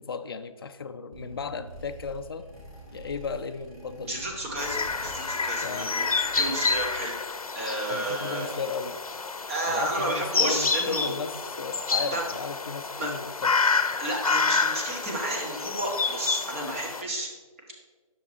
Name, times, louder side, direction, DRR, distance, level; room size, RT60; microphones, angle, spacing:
voice 1, 0.0-2.4 2.9-4.2 5.6-5.9 7.9-9.0 9.7-13.6, left 5 dB, 40° left, 9 dB, 0.5 m, -35 dB
sound 1, 1.1-7.2, equal, 5° right, 1.6 m, -46 dB
voice 2, 4.1-7.2 7.5-8.6 9.5-11.2 12.1-12.2 13.0-13.1 14.0-17.3, right 1 dB, 25° right, -1 dB, 1.4 m, -31 dB
sound 2, 4.6-17.0, left 4 dB, 85° left, 0.8 m, -29 dB
9.8 x 6.5 x 4.1 m, 1.4 s
figure-of-eight pair, 165°, 18 cm